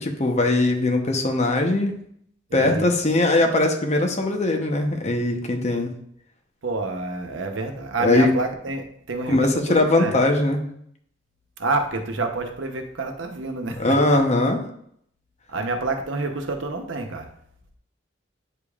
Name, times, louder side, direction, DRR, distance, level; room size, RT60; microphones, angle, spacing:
voice 1, 0.0-2.0 2.5-5.9 8.0-8.3 9.3-10.6 13.8-14.6, left 2 dB, 35° left, 3 dB, 0.9 m, -20 dB
voice 2, 2.5-2.9 6.6-10.2 11.6-14.2 15.5-17.3, right 3 dB, 85° right, 4 dB, 0.9 m, -28 dB
8.8 x 5.2 x 2.4 m, 0.68 s
head